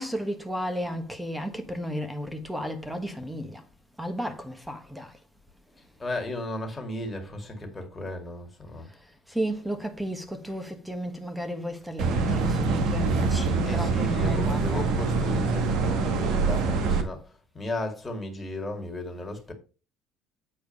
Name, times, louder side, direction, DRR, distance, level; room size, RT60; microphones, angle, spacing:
voice 1, 0.0-3.7 4.0-5.2 8.8-15.0, equal, 5° right, 1.4 m, -33 dB
voice 2, 6.0-8.9 13.6-19.5, left 1 dB, 15° left, 2.2 m, -35 dB
sound 1, 12.0-17.0, right 4 dB, 60° right, 1.6 m, -25 dB
8.8 x 4.5 x 5.3 m
cardioid pair, 145°, 0 cm